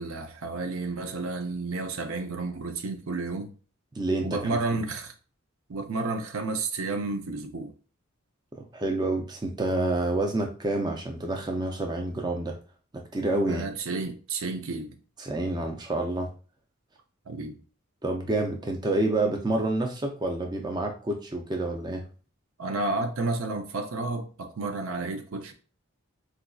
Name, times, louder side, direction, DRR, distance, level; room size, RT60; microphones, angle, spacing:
voice 1, 0.0-3.5 4.2-5.1 5.7-7.7 13.5-15.0 17.3-17.6 22.6-25.5, right 3 dB, 80° right, 0.5 m, -31 dB
voice 2, 3.9-4.4 8.6-12.6 12.9-13.6 15.2-16.3 18.0-22.0, right 2 dB, 20° right, 0.4 m, -28 dB
4.0 x 2.5 x 2.2 m
head